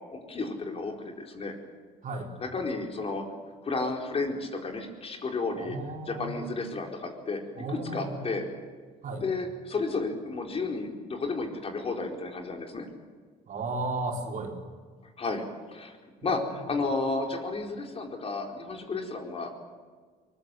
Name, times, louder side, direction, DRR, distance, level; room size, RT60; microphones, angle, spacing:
voice 1, 0.0-1.5 2.4-3.2 3.6-5.8 6.1-7.4 7.7-8.5 9.2-12.9 15.2-15.4 15.7-16.0 16.2-19.5, left 3 dB, 35° left, 2 dB, 4.5 m, -32 dB
voice 2, 5.6-6.5 7.6-8.2 9.0-9.2 13.5-14.6, right 2 dB, 50° right, 1 dB, 4.6 m, -34 dB
23.0 x 21.0 x 7.9 m, 1.5 s
cardioid pair, 110°, 17 cm